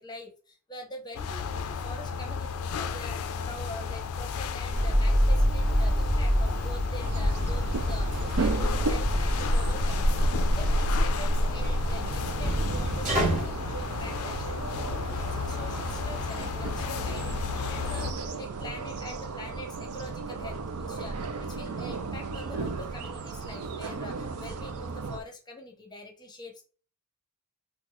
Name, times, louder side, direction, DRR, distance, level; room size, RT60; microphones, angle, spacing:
voice 1, 0.0-26.6, left 1 dB, 20° left, 3 dB, 0.7 m, -44 dB
sound 1, 1.1-18.1, left 6 dB, 70° left, 0.3 m, -34 dB
sound 2, 4.7-13.4, equal, 35° right, 1.2 m, -28 dB
sound 3, 7.0-25.2, right 1 dB, 85° right, 0.5 m, -31 dB
3.0 x 2.3 x 3.8 m, 0.37 s
head